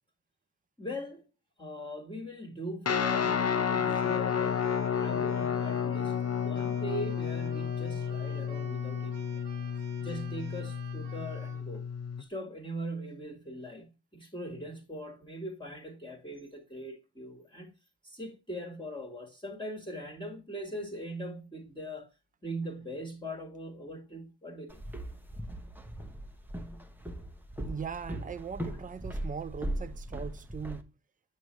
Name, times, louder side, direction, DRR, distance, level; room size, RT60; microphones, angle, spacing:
voice 1, 0.8-1.3 1.6-9.4 10.0-11.8 12.2-17.7 18.0-22.1 22.4-24.8, equal, 10° left, 1.6 m, -41 dB
Guitar, 2.9-12.2, left 7 dB, 35° left, 0.6 m, -31 dB
Keyboard (musical), 3.9-11.7, right 7 dB, 70° right, 1.1 m, -52 dB
Walk footsteps, 24.7-30.8, right 1 dB, 5° right, 0.8 m, -39 dB
voice 2, 27.6-30.9, right 6 dB, 20° right, 0.4 m, -40 dB
7.9 x 6.4 x 3.1 m
wide cardioid pair, 105°, 43 cm